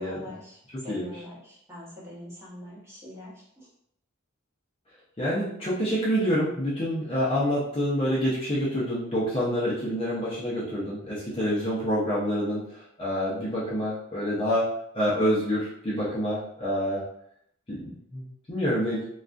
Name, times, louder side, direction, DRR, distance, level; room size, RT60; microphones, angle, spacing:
voice 1, 0.0-0.6 0.8-3.7, left 1 dB, 10° right, -7 dB, 0.9 m, -42 dB
voice 2, 0.7-1.2 5.2-14.7 14.9-17.0 17.7-19.1, equal, 25° left, -8 dB, 0.5 m, -27 dB
2.3 x 2.2 x 2.4 m, 0.71 s
head